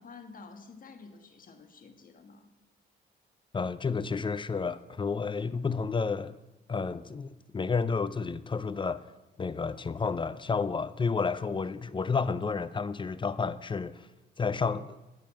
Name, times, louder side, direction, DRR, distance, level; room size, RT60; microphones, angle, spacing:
voice 1, 0.0-2.5, left 4 dB, 45° left, 1.5 m, -50 dB
voice 2, 3.5-6.4 6.7-9.1 9.4-14.1 14.4-15.0, left 5 dB, 25° left, 0.5 m, -31 dB
10.5 x 5.5 x 7.5 m
cardioid pair, 90°, 20 cm